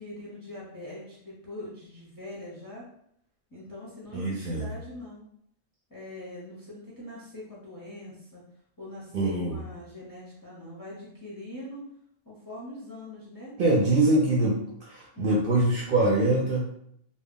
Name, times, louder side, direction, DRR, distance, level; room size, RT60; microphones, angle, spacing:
voice 1, 0.0-2.9 3.5-5.2 5.9-8.4 8.8-11.8 12.2-13.5 13.9-14.1 15.1-15.4, left 1 dB, 25° left, -6 dB, 0.5 m, -42 dB
voice 2, 4.1-4.7 9.1-9.6 13.6-16.6, right 2 dB, 60° right, -3 dB, 0.6 m, -24 dB
2.2 x 2.1 x 3.6 m, 0.71 s
omnidirectional pair, 1.3 m